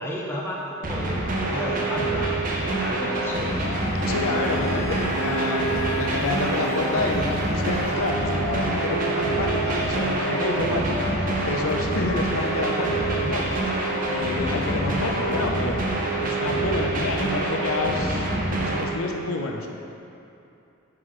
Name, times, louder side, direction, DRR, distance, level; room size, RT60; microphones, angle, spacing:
voice 1, 0.0-3.5, equal, 10° left, -4 dB, 0.7 m, -33 dB
sound 1, 0.8-18.8, right 2 dB, 40° right, 0.7 m, -26 dB
Siren, 3.1-15.5, left 3 dB, 30° left, 0.3 m, -36 dB
voice 2, 4.0-15.8 16.2-19.7, left 3 dB, 80° left, 2 dB, 0.6 m, -29 dB
sound 2, 4.1-11.8, right 1 dB, 80° right, 0.5 m, -33 dB
9.7 x 4.8 x 3.1 m, 2.7 s
head